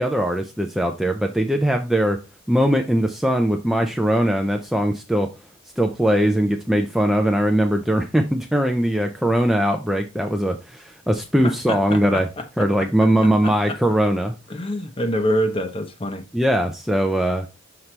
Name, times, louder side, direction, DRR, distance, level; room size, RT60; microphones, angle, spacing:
voice 1, 0.0-2.2 2.5-5.3 5.8-12.3 12.6-14.3 16.3-17.5, equal, ahead, 0.5 m, -20 dB
voice 2, 11.4-12.7 13.2-13.8 14.5-16.2, equal, 25° left, 0.8 m, -26 dB
5.9 x 5.4 x 3.2 m
head